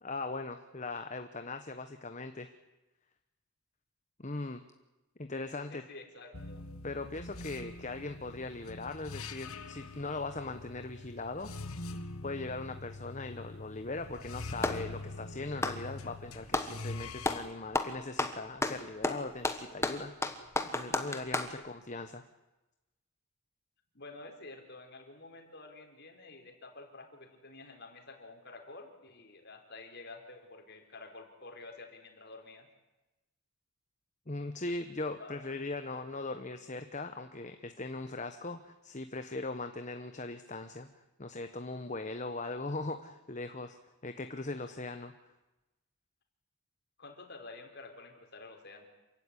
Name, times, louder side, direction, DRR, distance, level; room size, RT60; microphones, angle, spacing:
voice 1, 0.0-2.5 4.2-4.6 5.2-5.8 6.8-11.5 11.9-20.3 20.6-22.2 34.3-40.9 41.2-43.8 44.0-45.1, left 3 dB, 35° left, 8 dB, 1.1 m, -39 dB
voice 2, 5.7-6.7 21.6-21.7 23.9-32.7 35.2-35.6 47.0-48.9, left 3 dB, 50° left, 4 dB, 4.1 m, -50 dB
sound 1, 6.3-17.4, left 2 dB, 75° left, 1.7 m, -44 dB
Clapping, 14.0-14.9 15.5-16.8 17.2-17.5 17.7-21.6, left 2 dB, 10° left, 1.5 m, -33 dB
27.0 x 16.0 x 10.0 m, 1.0 s
head